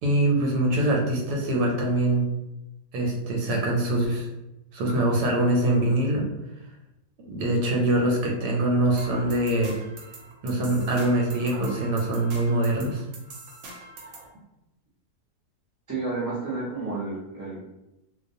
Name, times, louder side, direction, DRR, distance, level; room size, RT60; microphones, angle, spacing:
voice 1, 0.0-2.3 2.9-4.3 4.7-6.3 7.2-9.7 10.4-13.0, right 1 dB, 90° right, -1 dB, 1.2 m, -23 dB
sound 1, 9.0-14.3, right 2 dB, 70° right, 1.0 m, -44 dB
voice 2, 15.9-17.6, right 3 dB, 30° right, -10 dB, 0.3 m, -31 dB
2.4 x 2.3 x 2.6 m, 0.94 s
omnidirectional pair, 1.7 m